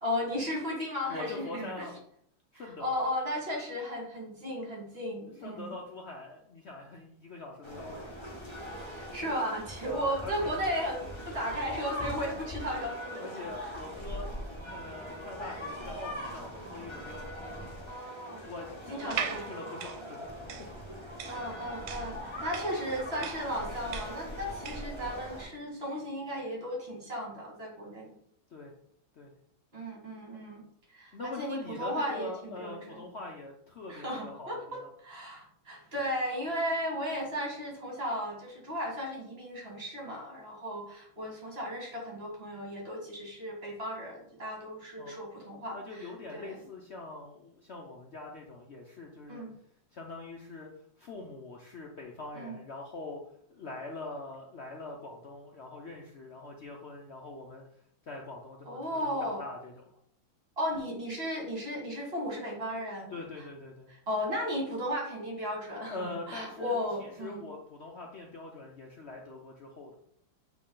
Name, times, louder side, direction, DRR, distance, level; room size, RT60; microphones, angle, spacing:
voice 1, 0.0-1.9 2.5-5.7 8.9-13.7 17.9-18.4 18.9-19.6 21.3-28.1 29.7-30.6 30.9-33.0 33.9-46.6 49.3-49.5 52.3-52.6 58.7-59.4 60.6-63.1 64.1-67.5, equal, 30° right, -2 dB, 1.9 m, -35 dB
voice 2, 1.1-2.0 2.5-2.9 5.4-8.1 9.8-10.5 13.2-14.4 14.7-17.3 18.4-20.3 28.5-28.7 29.1-29.3 31.1-34.9 45.0-45.2 45.7-49.4 49.9-50.7 51.0-53.2 53.5-59.8 63.1-63.9 65.9-69.9, left 2 dB, 85° left, 0 dB, 0.5 m, -43 dB
sound 1, 7.6-25.5, equal, 15° left, 1.2 m, -41 dB
sound 2, 19.0-25.0, right 8 dB, 75° right, 1.4 m, -39 dB
8.5 x 3.3 x 3.8 m, 0.69 s
omnidirectional pair, 2.2 m